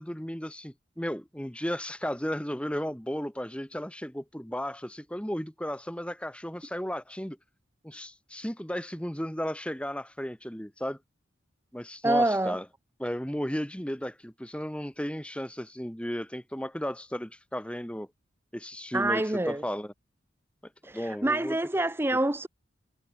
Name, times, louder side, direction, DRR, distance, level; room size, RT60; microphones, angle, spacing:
voice 1, 0.0-7.4 7.8-11.0 11.7-12.6 13.0-18.1 18.5-19.9 20.9-21.6, equal, 5° left, 1.8 m, -34 dB
voice 2, 12.0-12.6 18.9-19.6 20.8-22.5, right 2 dB, 10° right, 0.6 m, -26 dB
head